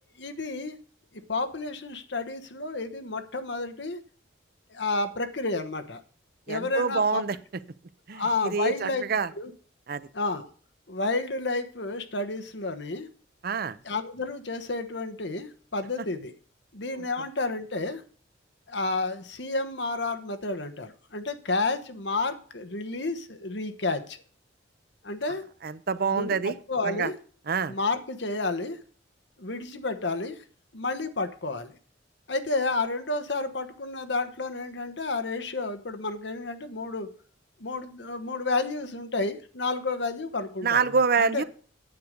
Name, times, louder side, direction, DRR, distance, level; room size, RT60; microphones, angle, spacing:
voice 1, 0.2-0.8 1.3-4.0 4.7-6.0 6.5-7.2 8.1-9.0 9.4-9.5 10.1-10.5 10.9-13.1 13.8-16.3 16.7-18.0 18.7-24.2 25.0-25.4 26.1-27.1 27.7-28.8 29.4-30.4 30.7-31.8 32.3-37.1 37.6-41.4, left 3 dB, 60° left, 9 dB, 1.2 m, -31 dB
voice 2, 6.5-7.4 8.1-9.3 9.9-10.1 13.4-13.8 17.0-17.1 25.6-26.5 26.9-27.1 27.5-27.7 40.6-41.4, right 5 dB, 50° right, 15 dB, 0.6 m, -26 dB
9.5 x 8.1 x 5.2 m, 0.43 s
head